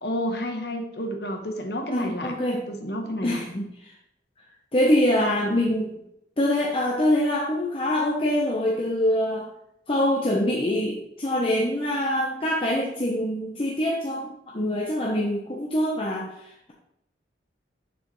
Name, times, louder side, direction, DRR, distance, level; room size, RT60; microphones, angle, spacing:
voice 1, 0.0-2.3 2.7-3.4, equal, 60° left, 4 dB, 1.0 m, -30 dB
voice 2, 1.9-2.7 3.2-3.9 4.4-4.5 4.7-5.9 6.4-9.5 9.9-16.7, left 1 dB, 30° left, -3 dB, 0.9 m, -24 dB
6.9 x 6.7 x 3.1 m, 0.79 s
head